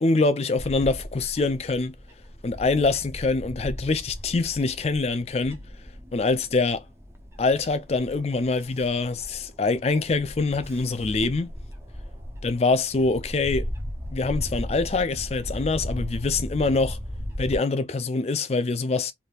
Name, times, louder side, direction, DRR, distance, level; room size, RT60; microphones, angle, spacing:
voice 1, 0.0-1.9 2.4-5.6 6.1-6.8 7.4-11.5 12.4-13.7 14.1-17.0 17.4-19.1, left 3 dB, 35° left, 0.4 m, -24 dB
Bird / Wind, 0.6-17.6, equal, 15° right, 0.7 m, -37 dB
3.4 x 2.7 x 2.3 m
head